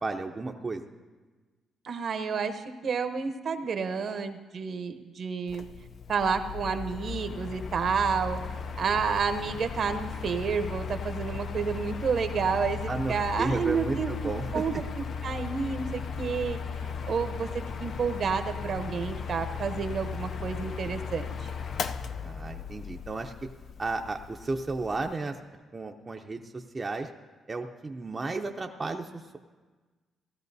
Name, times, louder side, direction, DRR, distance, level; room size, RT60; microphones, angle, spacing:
voice 1, 0.0-0.8 12.9-14.6 22.2-23.5 23.8-25.4 25.7-27.1 27.5-29.4, right 3 dB, 25° right, 3 dB, 0.6 m, -33 dB
voice 2, 1.8-5.6 6.1-8.4 8.7-14.1 14.5-14.7 15.2-16.6 17.1-21.5, right 5 dB, 55° right, 8 dB, 0.8 m, -30 dB
Mechanical fan, 5.5-25.1, left 5 dB, 55° left, 0.5 m, -37 dB
17.5 x 12.5 x 2.7 m, 1.3 s
cardioid pair, 90°, 0 cm